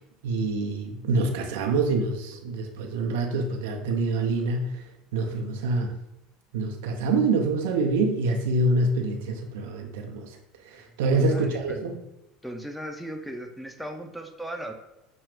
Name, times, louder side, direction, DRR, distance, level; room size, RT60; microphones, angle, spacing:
voice 1, 0.2-4.8 5.1-6.0 6.5-10.4 10.6-12.0, right 3 dB, 70° right, 3 dB, 0.5 m, -26 dB
voice 2, 10.8-11.8 12.4-14.7, right 1 dB, ahead, 4 dB, 0.6 m, -37 dB
5.9 x 2.3 x 3.5 m, 0.91 s
hypercardioid pair, 70°, 0 cm